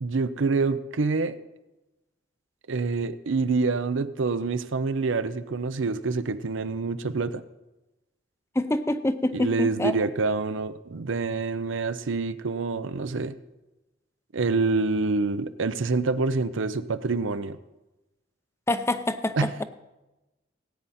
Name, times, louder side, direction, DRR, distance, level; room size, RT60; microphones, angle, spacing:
voice 1, 0.0-1.4 2.7-7.4 9.3-13.4 14.3-17.6 19.4-19.5, right 3 dB, 85° right, 13 dB, 0.6 m, -26 dB
voice 2, 8.6-9.9 18.7-19.6, left 1 dB, 15° left, 11 dB, 0.5 m, -26 dB
17.5 x 9.1 x 4.2 m, 1.0 s
head